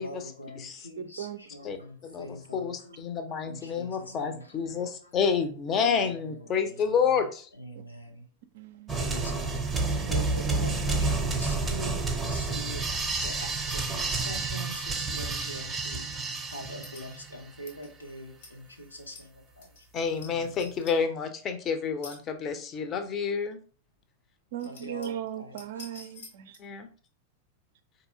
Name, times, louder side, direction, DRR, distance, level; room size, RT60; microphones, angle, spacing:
voice 1, 0.0-3.0 3.4-5.1 5.7-7.2 7.5-8.3 8.9-9.5 10.1-19.8 20.1-20.7 24.6-25.6, equal, 85° left, 0.7 m, -43 dB
voice 2, 1.0-1.4 8.5-9.0 24.5-26.6, right 10 dB, 55° right, 0.4 m, -37 dB
voice 3, 2.5-7.5 19.9-23.6 26.6-26.9, left 6 dB, 30° left, 0.5 m, -29 dB
sound 1, 8.9-17.4, right 3 dB, 15° right, 0.6 m, -30 dB
sound 2, 16.8-17.1 17.7-17.9 18.4-18.6 19.0-19.3 19.6-20.3 20.5-20.9 22.0-22.2 22.6-22.7 24.0-24.1 24.5-25.3 25.6-26.7, left 4 dB, 60° left, 1.0 m, -48 dB
4.0 x 2.7 x 2.6 m
figure-of-eight pair, 90°, 0 cm